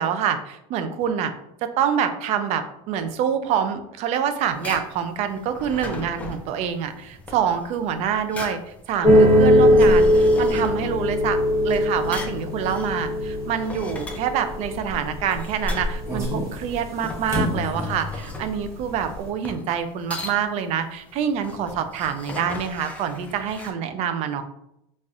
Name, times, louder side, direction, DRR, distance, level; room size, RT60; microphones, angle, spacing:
voice 1, 0.0-1.3 1.6-8.6 8.9-11.4 11.6-24.4, right 8 dB, 50° right, 9 dB, 0.4 m, -26 dB
sound 1, 4.4-23.7, left 2 dB, 10° left, 0.5 m, -39 dB
sound 2, 9.0-18.3 18.6-19.2, equal, 20° right, 1.1 m, -20 dB
4.0 x 2.4 x 2.4 m, 0.80 s
supercardioid pair, 125°, 14 cm